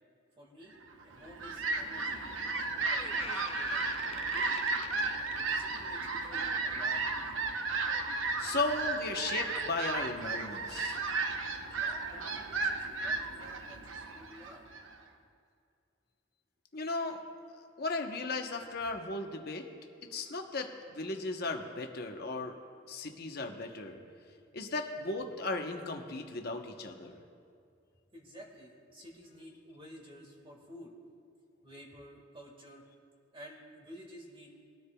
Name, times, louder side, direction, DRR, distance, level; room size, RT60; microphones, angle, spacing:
voice 1, 0.4-0.8 1.1-2.3 2.6-3.4 3.7-4.7 5.5-7.1 11.7-14.7 28.1-30.9 31.6-32.8 33.3-34.6, equal, 25° right, 0 dB, 1.7 m, -52 dB
Fowl, 1.0-15.0, right 3 dB, 85° right, 0.8 m, -34 dB
Door, 2.1-2.2 2.5-6.0 6.4-6.7 7.4-7.5, left 5 dB, 30° left, 0.4 m, -46 dB
voice 2, 8.4-11.0 16.7-17.2 17.8-19.7 20.1-22.6 22.9-24.0 24.5-27.2, left 3 dB, 50° left, 3 dB, 0.9 m, -36 dB
21.0 x 9.9 x 2.3 m, 2.3 s
head